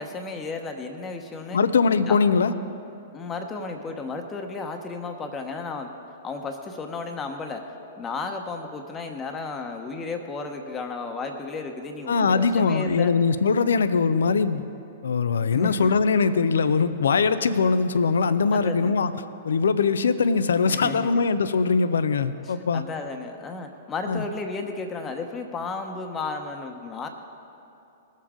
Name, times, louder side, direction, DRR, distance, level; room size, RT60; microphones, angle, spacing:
voice 1, 0.0-1.6 2.0-2.2 3.1-5.9 6.2-7.7 8.0-13.1 15.5-15.9 18.5-18.9 20.7-21.3 22.4-27.1, left 4 dB, 20° left, 4 dB, 1.0 m, -33 dB
voice 2, 1.5-2.5 12.1-14.6 15.0-19.1 19.4-22.8 24.1-24.2, left 5 dB, 75° left, 12 dB, 0.5 m, -21 dB
20.0 x 7.4 x 3.7 m, 2.8 s
hypercardioid pair, 110°, 0 cm